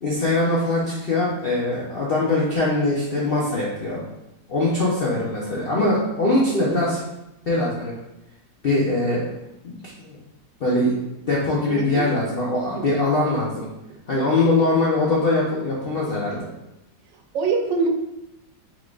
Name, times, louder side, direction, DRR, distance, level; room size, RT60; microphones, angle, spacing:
voice 1, 0.0-4.0 4.5-7.0 7.5-7.9 8.6-9.3 9.6-10.2 10.6-10.9 11.3-13.7 14.1-16.5, left 2 dB, 65° left, -5 dB, 0.5 m, -22 dB
voice 2, 11.7-12.1 12.7-13.0 17.3-17.9, right 4 dB, 80° right, 3 dB, 1.3 m, -24 dB
4.7 x 4.0 x 2.4 m, 0.91 s
omnidirectional pair, 2.0 m